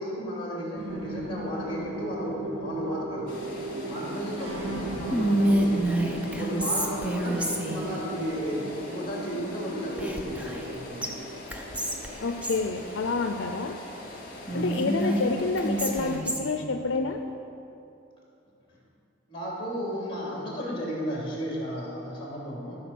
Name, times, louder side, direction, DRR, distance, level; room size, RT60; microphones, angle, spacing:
voice 1, 0.0-3.5 3.8-11.0 14.5-14.7 18.7-18.8 19.3-22.8, equal, 25° left, -4 dB, 3.0 m, -34 dB
sound 1, 0.7-15.3, right 1 dB, 75° right, 1.7 m, -37 dB
sound 2, 3.3-16.2, left 1 dB, 50° left, 2.0 m, -43 dB
Whispering, 5.1-7.9 10.0-10.7 11.0-11.1 11.5-12.6 14.5-16.6, right 1 dB, 5° right, 0.7 m, -28 dB
voice 2, 12.2-13.8 14.5-17.2, left 3 dB, 75° left, 5 dB, 0.5 m, -28 dB
14.5 x 5.1 x 7.0 m, 2.7 s
head